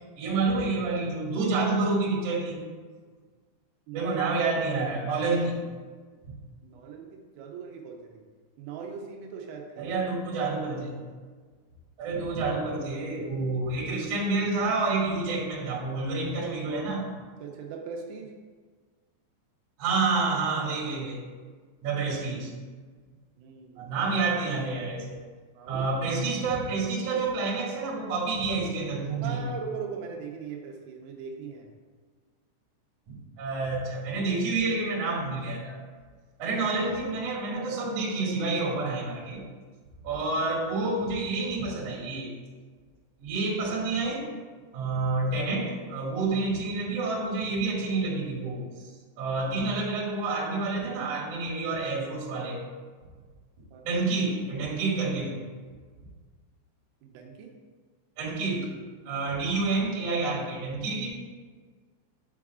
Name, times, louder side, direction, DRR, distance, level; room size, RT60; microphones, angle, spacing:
voice 1, 0.2-2.6 3.9-5.5 9.8-11.0 12.0-17.0 19.8-21.2 21.8-22.5 23.8-25.2 25.7-29.4 33.1-35.8 36.4-39.4 40.0-42.3 43.2-44.3 44.7-48.6 49.2-52.6 53.8-55.4 58.2-58.7 59.0-61.1, right 3 dB, 50° right, -6 dB, 2.6 m, -28 dB
voice 2, 3.9-4.2 6.6-8.1 8.6-9.9 17.4-18.3 23.4-23.9 25.5-25.9 29.2-31.7 53.7-54.0 57.0-57.5, right 6 dB, 80° right, 1 dB, 3.4 m, -39 dB
9.8 x 7.0 x 2.4 m, 1.5 s
omnidirectional pair, 5.9 m